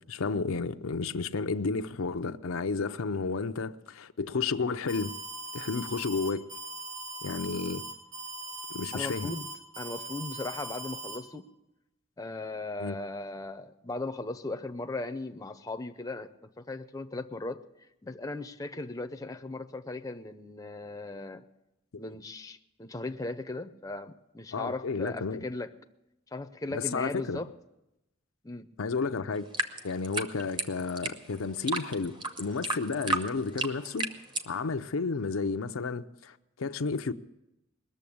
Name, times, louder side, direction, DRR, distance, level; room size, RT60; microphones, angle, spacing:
voice 1, 0.1-5.1 5.5-6.4 7.2-7.8 8.7-9.3 12.8-13.0 21.9-22.1 24.5-25.5 26.7-27.4 28.8-29.5 29.8-34.1 34.5-37.1, left 4 dB, 90° left, 0.6 m, -32 dB
Alarm, 4.9-11.2, right 2 dB, 70° right, 6.8 m, -40 dB
voice 2, 8.9-9.5 9.8-11.5 12.2-17.6 18.0-21.4 22.0-25.7 26.3-27.5 28.4-28.7, left 2 dB, 15° left, 0.6 m, -37 dB
sound 1, 29.4-34.5, right 2 dB, 25° right, 0.9 m, -33 dB
20.5 x 7.0 x 8.5 m
head